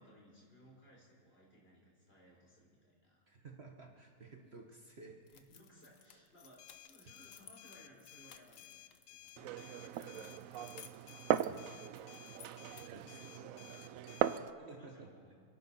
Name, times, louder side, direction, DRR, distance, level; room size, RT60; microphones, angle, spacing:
voice 1, 0.0-3.2 5.3-10.8 12.6-15.4, equal, 40° left, -4 dB, 4.5 m, -62 dB
voice 2, 3.3-5.2 11.5-11.7 12.8-13.5 14.7-15.1, right 3 dB, 45° right, 1 dB, 1.5 m, -54 dB
sound 1, 5.3-9.3 9.9-13.1, left 8 dB, 60° left, 1.2 m, -59 dB
sound 2, 6.6-14.4, left 13 dB, 75° left, 1.2 m, -57 dB
Glass, 9.4-14.5, right 11 dB, 70° right, 0.9 m, -38 dB
29.0 x 11.5 x 4.2 m, 2.1 s
omnidirectional pair, 1.6 m